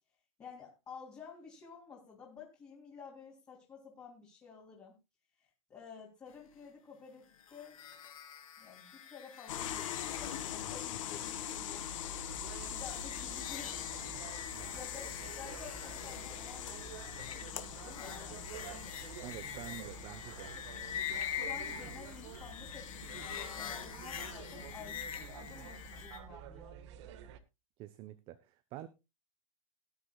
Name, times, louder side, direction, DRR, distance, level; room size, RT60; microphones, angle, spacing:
voice 1, 0.4-5.0 5.4-7.8 8.6-12.3 12.7-13.9 14.7-15.1 15.4-16.8 17.1-19.1 21.4-26.7, left 6 dB, 20° left, -3 dB, 3.3 m, -52 dB
sound 1, 7.4-26.2, left 9 dB, 85° left, 3.4 m, -45 dB
sound 2, 9.5-26.1, left 10 dB, 70° left, 2.2 m, -44 dB
sound 3, 12.3-27.4, right 9 dB, 60° right, 1.5 m, -50 dB
voice 2, 19.2-20.5 27.8-28.9, right 13 dB, 35° right, 12 dB, 0.8 m, -47 dB
19.0 x 9.9 x 2.3 m, 0.25 s
hypercardioid pair, 145°, 17 cm